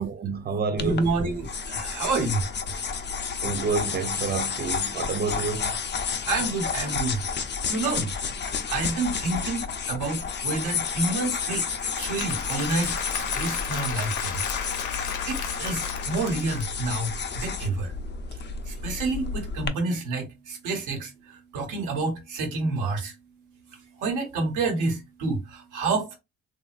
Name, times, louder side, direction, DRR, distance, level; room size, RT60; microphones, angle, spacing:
voice 1, 0.0-1.2 3.4-5.8, right 5 dB, 30° right, 0.5 m, -29 dB
sound 1, 0.8-19.7, left 6 dB, 35° left, 0.5 m, -31 dB
voice 2, 0.8-2.4 6.3-7.2 7.7-8.1 8.7-11.6 12.0-14.3 14.9-17.9 18.7-23.1 24.0-26.2, right 3 dB, 90° right, 1.2 m, -29 dB
Applause / Crowd, 11.6-17.0, left 8 dB, 80° left, 0.7 m, -35 dB
3.1 x 2.6 x 2.4 m
cardioid pair, 90°, 30 cm